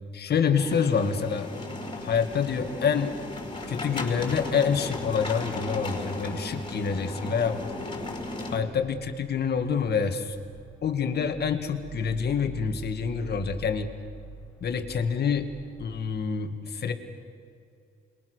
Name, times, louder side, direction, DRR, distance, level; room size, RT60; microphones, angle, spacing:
voice 1, 0.1-1.5 2.0-3.2 3.7-7.6 8.5-10.4 10.8-13.9 14.6-15.5 15.8-16.9, left 6 dB, 55° left, 6 dB, 2.1 m, -27 dB
sound 1, 0.6-8.6, left 2 dB, 25° left, 5.6 m, -36 dB
sound 2, 2.1-16.2, right 1 dB, 5° left, 3.0 m, -48 dB
28.0 x 22.5 x 6.5 m, 2.4 s
cardioid pair, 90°, 20 cm